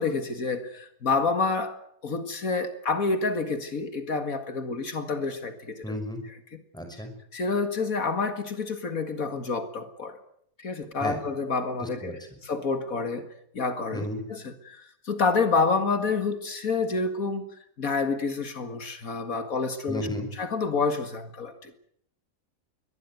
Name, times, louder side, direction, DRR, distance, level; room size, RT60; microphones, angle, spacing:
voice 1, 0.0-1.8 2.0-5.8 7.3-10.2 10.6-12.2 12.4-13.3 13.5-17.4 17.8-20.1 20.4-21.8, left 4 dB, 75° left, 9 dB, 2.4 m, -28 dB
voice 2, 5.8-6.2 6.7-7.1 11.0-11.2 11.8-12.1 13.9-14.2 19.9-20.3, equal, 5° left, 5 dB, 5.9 m, -33 dB
23.0 x 19.0 x 9.3 m, 0.69 s
omnidirectional pair, 1.5 m